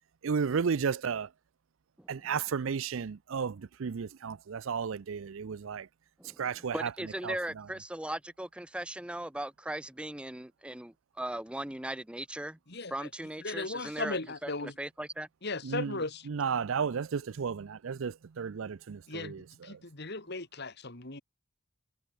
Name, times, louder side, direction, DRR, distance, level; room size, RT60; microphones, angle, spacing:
voice 1, 0.2-1.3 2.1-5.9 6.4-6.9 7.2-7.4 15.6-16.0 16.3-19.8, right 6 dB, 65° right, 0.5 m, -33 dB
voice 2, 6.7-12.6 12.9-15.3, right 1 dB, 5° right, 0.5 m, -38 dB
voice 3, 12.7-13.1 13.4-14.7 15.4-16.3 19.1-19.4 19.6-21.2, left 3 dB, 50° left, 2.6 m, -37 dB
head